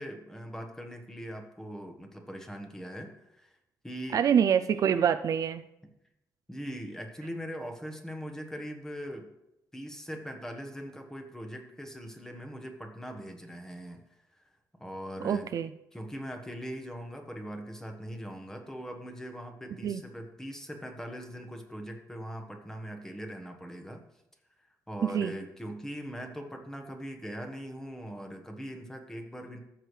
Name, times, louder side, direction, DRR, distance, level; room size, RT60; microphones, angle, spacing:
voice 1, 0.0-3.5 3.8-4.2 6.5-9.3 9.7-14.0 14.8-15.5 15.9-24.0 24.6-29.6, equal, 5° left, 3 dB, 1.3 m, -41 dB
voice 2, 4.1-5.6 15.2-15.7 19.8-20.0 25.0-25.3, right 8 dB, 60° right, 10 dB, 0.4 m, -25 dB
14.5 x 6.3 x 3.3 m, 0.87 s
cardioid pair, 110°, 7 cm